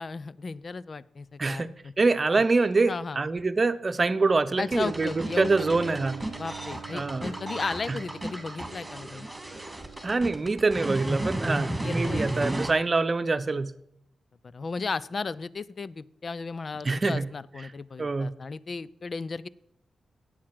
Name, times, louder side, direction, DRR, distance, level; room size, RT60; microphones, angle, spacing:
voice 1, 0.0-1.9 2.3-2.4 2.9-3.2 4.6-5.5 6.3-9.3 11.8-12.4 14.5-19.5, left 4 dB, 55° left, 19 dB, 0.5 m, -35 dB
voice 2, 1.4-6.3 6.9-7.3 7.9-8.0 10.0-13.8 16.8-17.3 18.0-18.4, right 3 dB, 40° right, 12 dB, 0.8 m, -25 dB
Bowed string instrument, 4.6-11.6, right 9 dB, 75° right, 0.5 m, -45 dB
sound 1, 4.7-12.7, right 1 dB, 15° right, 2.7 m, -33 dB
8.7 x 8.5 x 7.7 m, 0.75 s
supercardioid pair, 45°, 0 cm